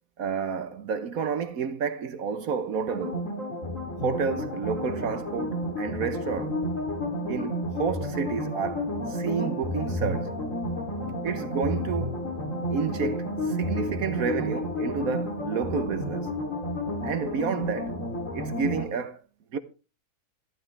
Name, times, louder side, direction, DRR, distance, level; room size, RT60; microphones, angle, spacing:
voice 1, 0.2-3.3 4.0-6.6 7.3-10.3 11.2-12.2 12.7-16.3 17.0-17.9 18.3-19.2 19.5-19.6, right 6 dB, 65° right, 1.3 m, -30 dB
sound 1, 2.9-18.8, left 1 dB, 55° left, 3.3 m, -31 dB
14.5 x 11.5 x 3.3 m
omnidirectional pair, 1.6 m